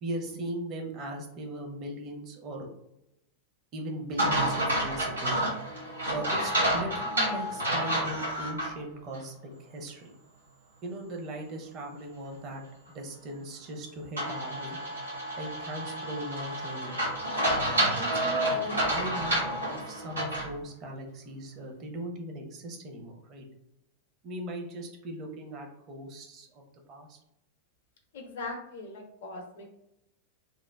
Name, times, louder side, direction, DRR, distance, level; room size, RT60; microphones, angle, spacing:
voice 1, 0.0-2.7 3.7-5.4 6.1-10.1 10.8-12.6 12.9-14.8 15.4-17.0 17.8-23.5 24.2-27.2, right 1 dB, 35° right, 2 dB, 0.6 m, -39 dB
sound 1, 4.2-8.7 9.1-9.2 14.2-20.5, right 1 dB, 80° right, 1.1 m, -29 dB
voice 2, 28.1-29.7, left 2 dB, 55° left, 1 dB, 0.4 m, -40 dB
2.9 x 2.0 x 2.2 m, 0.83 s
figure-of-eight pair, 90°, 0 cm